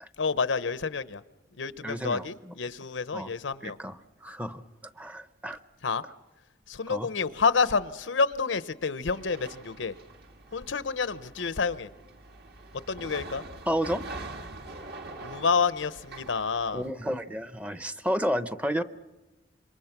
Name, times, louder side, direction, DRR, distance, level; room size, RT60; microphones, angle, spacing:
voice 1, 0.2-1.2 1.6-3.8 5.8-6.0 6.7-10.0 10.5-11.9 12.9-13.4 15.2-16.8, left 5 dB, 90° left, 15 dB, 0.8 m, -28 dB
voice 2, 1.8-2.5 3.1-3.3 3.6-4.0 4.2-4.6 5.0-5.6 6.9-7.1 13.7-14.0 16.7-18.8, equal, 10° right, 12 dB, 0.7 m, -31 dB
sound 1, 9.1-16.9, right 2 dB, 60° right, 1.8 m, -44 dB
26.5 x 23.5 x 5.9 m, 1.1 s
head